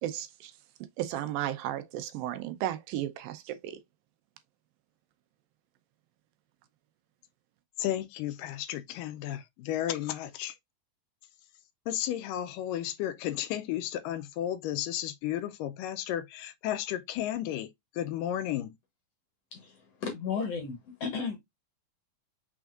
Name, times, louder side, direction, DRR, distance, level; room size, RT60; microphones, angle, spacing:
voice 1, 0.0-0.5 1.0-3.8, right 12 dB, 85° right, 2.5 m, -34 dB
voice 2, 7.8-10.6 11.9-18.8, left 12 dB, 80° left, 2.1 m, -33 dB
voice 3, 19.5-21.4, left 5 dB, 65° left, 1.6 m, -34 dB
6.2 x 3.5 x 2.4 m
omnidirectional pair, 4.0 m